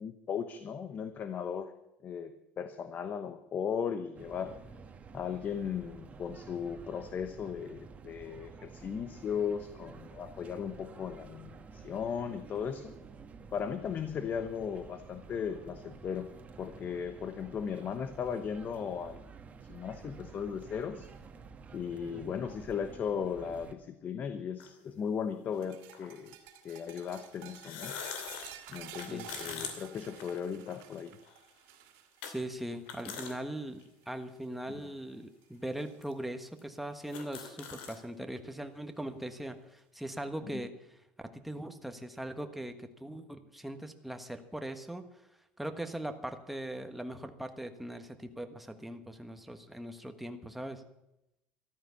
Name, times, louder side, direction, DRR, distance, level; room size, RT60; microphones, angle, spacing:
voice 1, 0.0-1.7 2.0-4.6 5.1-12.9 13.5-16.3 16.6-19.2 19.7-21.1 21.7-26.3 26.6-28.0 28.7-31.2 34.7-34.9 40.5-40.6, left 7 dB, 35° left, 10 dB, 1.0 m, -37 dB
sound 1, 4.1-23.7, right 5 dB, 30° right, 1.5 m, -51 dB
sound 2, 24.6-24.7 25.9-26.1 27.5-30.8 31.2-31.3 32.2-32.3 32.7-33.3 33.8-33.9 34.8-34.9 35.7-35.8 36.0-36.1 36.6-36.7 36.9-38.0, left 7 dB, 85° left, 2.7 m, -42 dB
sound 3, 25.5-34.1 34.4-34.7 35.1-36.0 37.3-37.4 38.7-38.8, right 10 dB, 80° right, 2.5 m, -51 dB
voice 2, 29.1-29.7 32.2-33.8 34.1-41.0 41.3-45.0 45.6-50.8, right 1 dB, 5° right, 7 dB, 1.4 m, -40 dB
14.0 x 12.5 x 7.0 m, 0.88 s
cardioid pair, 125°, 5 cm